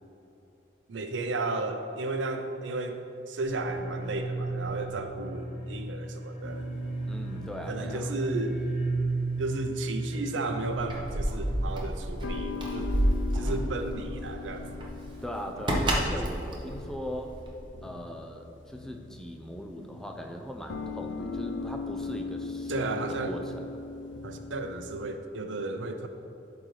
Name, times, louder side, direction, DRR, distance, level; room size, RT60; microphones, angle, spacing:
voice 1, 0.9-6.7 7.7-8.7 9.4-12.9 13.3-14.7 22.7-23.4 24.2-26.1, right 2 dB, 85° right, 6 dB, 0.6 m, -33 dB
sound 1, 3.4-11.5, right 3 dB, 40° left, 1.0 m, -34 dB
sound 2, 6.4-25.1, left 4 dB, 80° left, 0.5 m, -40 dB
voice 2, 7.1-8.1 15.2-17.4 17.8-23.9, equal, 5° left, 3 dB, 0.4 m, -39 dB
Keys jangling, 10.7-17.6, right 1 dB, 25° right, 0.8 m, -30 dB
11.5 x 3.9 x 3.2 m, 3.0 s
head